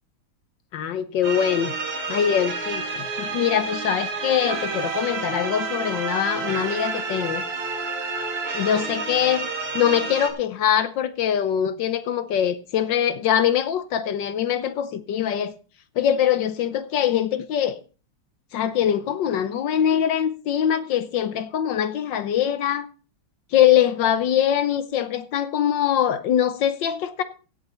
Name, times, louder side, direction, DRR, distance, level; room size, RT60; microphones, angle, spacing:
voice 1, 0.7-7.4 8.5-9.5 9.7-15.5 16.0-17.8 18.5-22.9 23.5-27.2, left 9 dB, 65° left, 1.3 m, -23 dB
sound 1, 1.2-10.3, right 4 dB, 90° right, 2.9 m, -29 dB
16.5 x 6.7 x 4.3 m
omnidirectional pair, 2.4 m